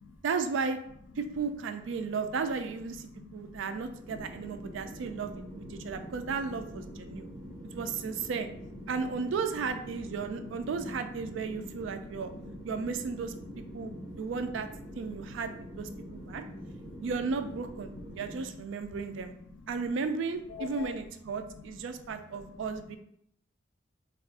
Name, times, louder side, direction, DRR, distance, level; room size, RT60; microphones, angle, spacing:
voice 1, 0.2-0.8 1.2-7.3 7.7-8.5 8.9-12.3 12.6-13.9 14.2-14.7 15.0-16.4 17.0-19.3 19.7-23.0, right 5 dB, 70° right, 8 dB, 0.3 m, -34 dB
voice 2, 3.1-3.7 5.1-5.2 5.7-5.9 7.1-7.8 12.3-12.4 13.7-14.1 15.1-15.2 16.0-16.3 16.7-17.1 20.5-21.0, left 5 dB, 70° left, 6 dB, 0.4 m, -47 dB
sound 1, 4.0-18.4, equal, 30° right, 0.6 m, -45 dB
2.4 x 2.4 x 3.6 m, 0.70 s
head